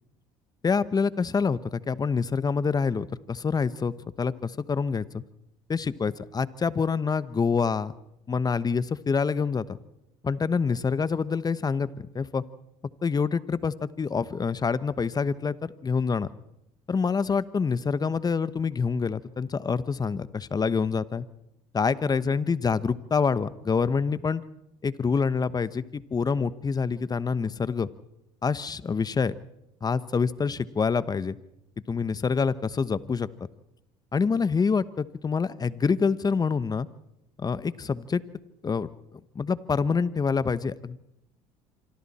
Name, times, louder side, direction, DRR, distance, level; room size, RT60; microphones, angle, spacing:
voice 1, 0.6-5.2 5.7-7.9 8.3-9.8 10.2-11.9 12.1-12.4 13.0-16.3 16.9-21.3 21.7-24.4 24.8-27.9 28.4-29.3 29.8-31.4 31.9-33.5 34.1-36.9 37.4-38.2 38.6-38.9 39.3-41.0, left 5 dB, 30° left, 16 dB, 1.1 m, -26 dB
26.5 x 25.0 x 4.4 m, 0.83 s
supercardioid pair, 75°, 14 cm